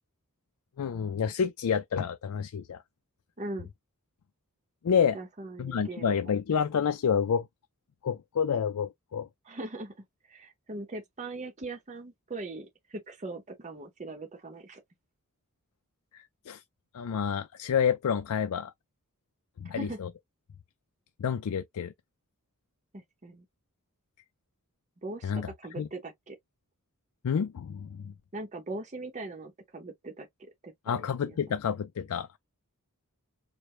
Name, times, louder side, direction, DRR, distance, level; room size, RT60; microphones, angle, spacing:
voice 1, 0.8-2.8 4.8-5.2 5.6-7.5 8.0-9.3 16.1-16.6 16.9-18.7 19.6-20.1 21.2-21.9 25.2-25.5 25.8-25.9 27.2-28.1 30.9-32.4, left 7 dB, 80° left, 0.4 m, -29 dB
voice 2, 3.4-3.7 5.1-6.3 9.4-14.8 19.6-20.0 22.9-23.4 25.0-26.4 28.3-31.4, right 2 dB, 30° right, 0.7 m, -40 dB
4.7 x 2.1 x 3.1 m
head